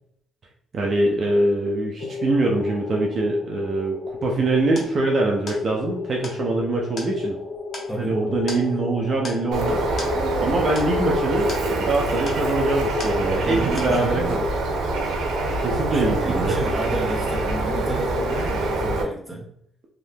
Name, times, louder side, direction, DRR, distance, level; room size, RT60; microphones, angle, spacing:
voice 1, 0.7-7.4 7.9-10.1 10.4-14.5 15.6-16.5, right 2 dB, 40° right, -1 dB, 0.5 m, -23 dB
sound 1, 2.0-19.1, left 5 dB, 70° left, 0.6 m, -33 dB
sound 2, 4.1-13.5 13.8-14.3, left 2 dB, 35° left, 0.8 m, -40 dB
Bird, 9.5-19.0, right 2 dB, 85° right, 0.6 m, -25 dB
voice 2, 13.4-14.4 15.9-19.5, right 2 dB, 10° right, -2 dB, 0.8 m, -31 dB
2.7 x 2.5 x 3.4 m, 0.70 s
cardioid pair, 150°, 0 cm